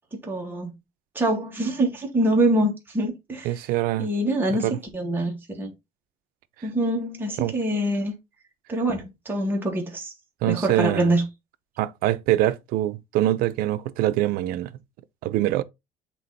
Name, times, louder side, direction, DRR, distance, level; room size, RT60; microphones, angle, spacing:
voice 1, 0.2-0.8 1.2-3.6 4.0-5.7 6.6-8.1 8.7-10.1 10.5-11.2, right 1 dB, 15° right, 2.0 m, -25 dB
voice 2, 3.4-4.1 4.5-4.8 7.4-7.5 10.4-11.1 11.8-14.7 15.2-15.6, right 14 dB, 80° right, 0.6 m, -24 dB
7.7 x 3.1 x 4.1 m
cardioid pair, 120°, 15 cm